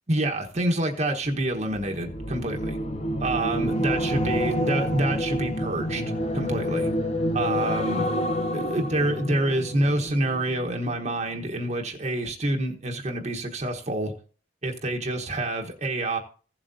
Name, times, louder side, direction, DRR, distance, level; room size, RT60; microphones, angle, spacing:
voice 1, 0.1-2.8 3.2-6.0 6.3-6.9 7.3-8.2 8.5-14.1 14.6-16.2, right 1 dB, 40° right, 2 dB, 1.2 m, -27 dB
sound 1, 1.7-11.0 11.4-11.7, equal, 35° left, 0.8 m, -28 dB
16.0 x 7.5 x 2.7 m, 0.39 s
head